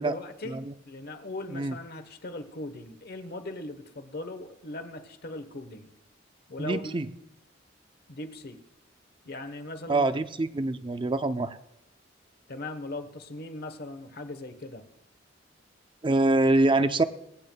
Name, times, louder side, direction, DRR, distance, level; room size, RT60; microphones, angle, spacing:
voice 1, 0.0-5.9 6.5-7.0 8.1-8.6 9.2-10.1 12.5-14.8, left 2 dB, 55° left, 9 dB, 1.1 m, -39 dB
voice 2, 6.6-7.1 9.9-11.6 16.0-17.0, right 2 dB, 25° right, 11 dB, 0.5 m, -25 dB
22.5 x 8.8 x 2.3 m, 0.86 s
head